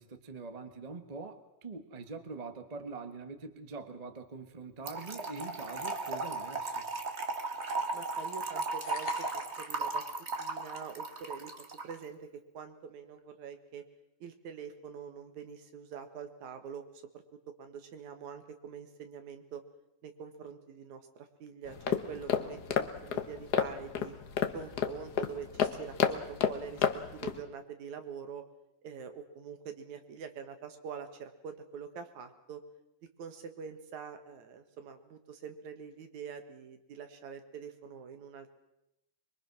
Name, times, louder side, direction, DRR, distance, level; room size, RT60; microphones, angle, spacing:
voice 1, 0.0-6.9, right 4 dB, 50° right, 8 dB, 0.4 m, -44 dB
Trickle dribble / Fill (with liquid), 4.9-11.9, right 3 dB, 30° right, 1.4 m, -36 dB
voice 2, 7.9-10.0 10.4-11.5 11.8-12.3 12.5-13.8 14.2-16.8 17.1-17.2 17.6-19.6 20.0-24.1 24.5-26.8 27.1-28.4 28.8-32.6 33.2-38.5, right 6 dB, 75° right, 7 dB, 3.0 m, -45 dB
sound 1, 8.8-9.6, left 6 dB, 90° left, 3.5 m, -46 dB
sound 2, 21.7-27.4, left 8 dB, 65° left, 1.0 m, -32 dB
24.5 x 22.5 x 6.1 m, 0.88 s
omnidirectional pair, 3.4 m